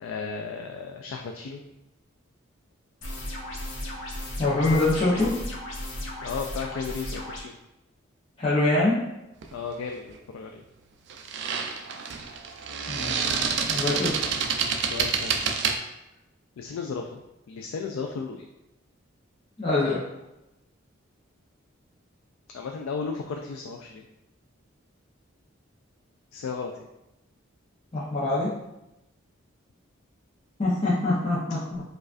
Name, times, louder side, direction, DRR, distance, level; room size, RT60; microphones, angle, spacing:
voice 1, 0.0-1.6 6.2-7.6 9.5-10.6 14.8-15.4 16.6-17.2 17.5-18.5 22.5-24.0 26.3-26.7, left 5 dB, 85° left, 3 dB, 0.3 m, -34 dB
sound 1, 3.0-7.4, left 1 dB, 70° left, 0.7 m, -35 dB
voice 2, 4.4-5.4 8.4-9.0 12.9-13.3 13.7-14.2 19.6-20.0 27.9-28.5 30.6-31.8, left 2 dB, 25° left, -9 dB, 0.6 m, -24 dB
sound 2, 9.4-9.6 11.1-15.8, right 6 dB, 55° right, 0.3 m, -28 dB
4.8 x 2.4 x 2.4 m, 0.92 s
head